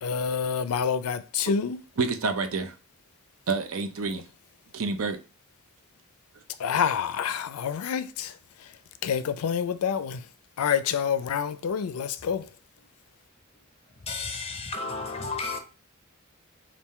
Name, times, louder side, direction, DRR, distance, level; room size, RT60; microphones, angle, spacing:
voice 1, 0.0-1.8 6.6-8.7 9.0-10.2 10.6-12.5, left 7 dB, 80° left, 0.4 m, -28 dB
voice 2, 2.0-2.7 3.5-4.2 4.7-5.2, right 4 dB, 65° right, 0.6 m, -28 dB
voice 3, 14.0-15.6, left 3 dB, 30° left, 0.7 m, -33 dB
3.7 x 2.5 x 4.1 m
head